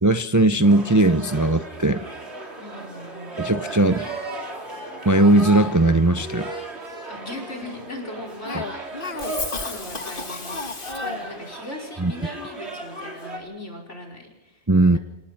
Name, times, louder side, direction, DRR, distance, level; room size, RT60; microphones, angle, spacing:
voice 1, 0.0-2.0 3.4-4.1 5.0-6.5 8.5-8.6 12.0-12.1 14.7-15.0, right 2 dB, 20° right, 11 dB, 0.6 m, -18 dB
sound 1, 0.6-13.4, right 2 dB, 60° right, 3.9 m, -36 dB
voice 2, 2.6-3.4 4.0-4.5 7.1-14.6 14.9-15.0, left 1 dB, 75° left, 0 dB, 5.4 m, -39 dB
Cough, 8.5-11.4, left 3 dB, 45° left, 1.9 m, -32 dB
27.5 x 19.0 x 5.9 m, 1.0 s
omnidirectional pair, 1.2 m